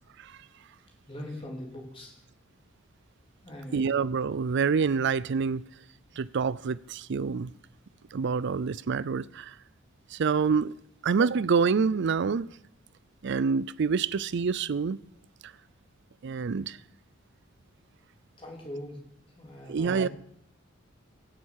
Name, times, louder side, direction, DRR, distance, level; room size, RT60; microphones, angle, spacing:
voice 1, 1.1-2.2 3.4-3.9 18.4-19.0 19.4-20.1, left 1 dB, 25° left, 3.6 m, -41 dB
voice 2, 3.7-5.6 6.2-7.5 8.1-9.5 10.1-10.7 11.0-12.5 13.2-15.0 16.2-16.8 19.7-20.1, right 5 dB, 60° right, 0.4 m, -27 dB
16.0 x 7.8 x 6.4 m
head